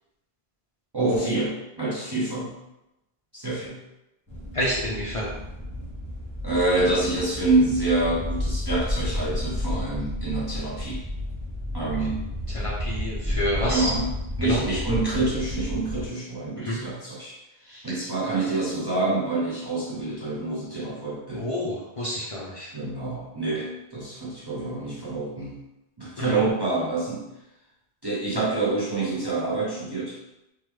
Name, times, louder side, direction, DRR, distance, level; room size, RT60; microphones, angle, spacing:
voice 1, 0.9-2.5 3.3-3.8 6.4-11.0 11.7-12.3 13.7-14.1 14.4-17.4 17.8-21.5 22.7-25.6 26.0-27.2 28.0-30.2, right 2 dB, 30° right, -7 dB, 0.5 m, -27 dB
sound 1, 4.3-16.1, left 1 dB, 10° left, 0.8 m, -31 dB
voice 2, 4.5-5.3 12.5-13.9 14.4-14.6 16.6-16.8 17.7-18.0 21.4-22.7 26.3-26.4, equal, 45° left, -6 dB, 0.5 m, -28 dB
3.4 x 2.1 x 3.0 m, 0.90 s
omnidirectional pair, 1.0 m